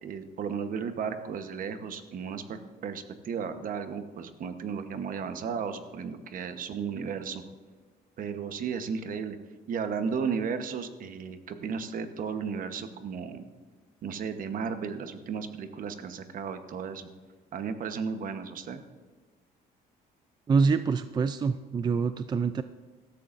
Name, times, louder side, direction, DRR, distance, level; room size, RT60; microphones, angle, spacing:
voice 1, 0.0-7.4 8.2-9.4 9.7-13.4 14.0-17.1 17.5-18.8, right 6 dB, 55° right, 8 dB, 1.1 m, -34 dB
voice 2, 20.5-22.6, right 5 dB, 25° right, 11 dB, 0.4 m, -25 dB
17.0 x 13.5 x 2.6 m, 1.4 s
cardioid pair, 110°, 17 cm